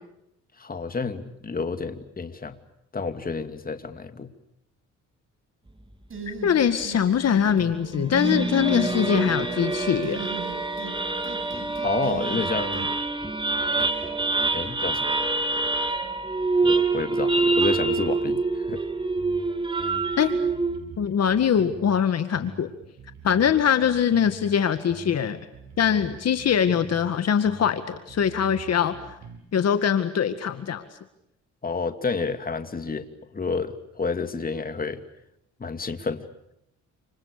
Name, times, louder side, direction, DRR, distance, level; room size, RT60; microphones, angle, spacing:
voice 1, 0.6-2.6 2.9-4.3 11.8-12.9 14.5-15.2 16.6-18.8 31.6-33.1 33.3-35.0 35.6-36.3, left 4 dB, 30° left, 8 dB, 2.7 m, -30 dB
sound 1, 6.1-7.0 7.3-7.8 8.1-9.0 10.0-11.0 11.2-12.9, right 4 dB, 45° right, 7.7 m, -37 dB
voice 2, 6.4-10.3 20.2-20.4 21.0-22.7 23.2-25.4 25.8-28.9 29.5-30.8, left 8 dB, 55° left, 9 dB, 2.0 m, -22 dB
sound 2, 7.5-20.8, right 3 dB, 15° right, 3.3 m, -26 dB
sound 3, 19.2-19.4 19.8-22.0 22.3-24.5 24.9-27.1 27.4-29.4, right 4 dB, 65° right, 7.0 m, -44 dB
29.5 x 28.5 x 6.8 m, 0.80 s
cardioid pair, 90°, 30 cm